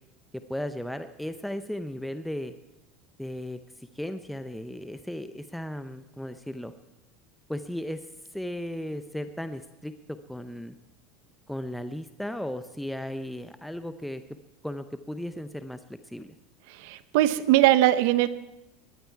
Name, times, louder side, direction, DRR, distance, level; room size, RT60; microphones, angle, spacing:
voice 1, 0.5-2.5 3.2-6.7 7.5-8.1 8.3-10.8 11.5-14.2 14.6-16.3, left 1 dB, 5° left, 10 dB, 0.7 m, -36 dB
voice 2, 16.8-18.3, right 14 dB, 75° right, 14 dB, 0.8 m, -21 dB
19.5 x 14.0 x 4.6 m, 0.94 s
supercardioid pair, 110°, 0 cm